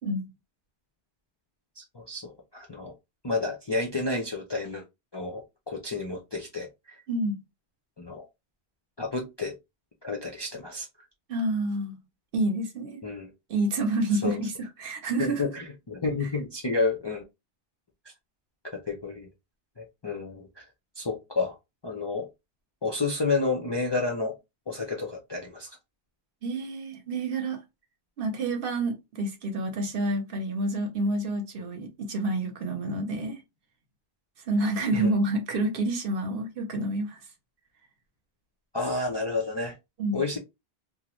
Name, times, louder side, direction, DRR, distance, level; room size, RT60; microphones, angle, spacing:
voice 1, 1.8-2.9 3.2-4.8 5.1-7.0 8.0-8.2 9.0-9.5 10.0-10.9 13.0-13.3 14.2-14.4 15.2-17.2 18.7-19.3 19.8-20.6 21.0-21.6 21.8-22.3 22.8-24.3 24.7-25.8 34.9-35.1 38.7-39.8 40.1-40.4, left 3 dB, 40° left, 0.4 m, -30 dB
voice 2, 7.1-7.4 11.3-12.0 12.3-13.0 13.5-14.5 14.8-15.4 26.4-27.6 28.2-33.4 34.5-37.2 40.0-40.2, right 2 dB, 65° right, 0.9 m, -28 dB
2.5 x 2.0 x 2.9 m
omnidirectional pair, 1.1 m